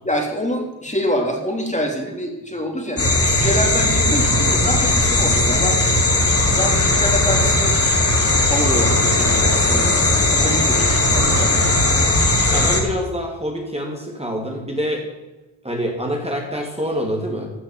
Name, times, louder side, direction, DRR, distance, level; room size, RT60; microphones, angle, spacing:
voice 1, 0.0-5.8 6.5-7.8 8.5-11.6, equal, 15° left, 2 dB, 3.3 m, -26 dB
sound 1, 3.0-12.8, left 2 dB, 30° left, 2.9 m, -17 dB
voice 2, 12.5-15.0 15.6-17.5, equal, 15° right, 0 dB, 2.8 m, -26 dB
14.5 x 6.4 x 7.3 m, 1.1 s
supercardioid pair, 55°, 47 cm